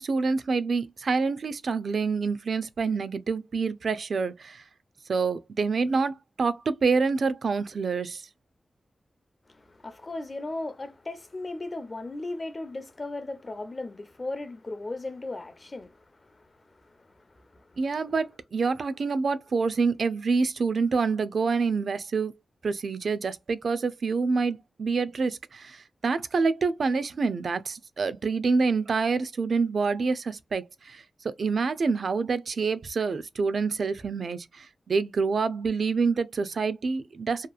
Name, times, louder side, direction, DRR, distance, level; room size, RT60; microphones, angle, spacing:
voice 1, 0.0-4.6 5.1-8.2 17.8-22.3 22.6-37.5, right 4 dB, 65° right, 0.4 m, -27 dB
voice 2, 9.5-16.5 17.5-17.6, left 2 dB, 35° left, 0.5 m, -36 dB
2.8 x 2.3 x 2.3 m
wide cardioid pair, 120°, 0 cm